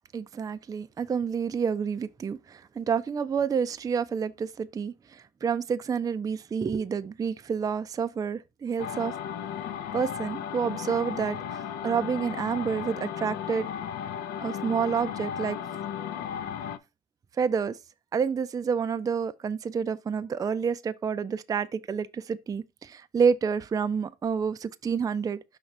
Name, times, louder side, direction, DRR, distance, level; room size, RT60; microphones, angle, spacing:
voice 1, 0.1-9.1 9.9-13.7 14.4-15.6 17.4-17.8 18.1-25.4, right 6 dB, 20° right, 0.4 m, -29 dB
sound 1, 8.8-16.8, left 8 dB, 80° left, 0.6 m, -35 dB
5.8 x 3.2 x 5.2 m
cardioid pair, 110°, 17 cm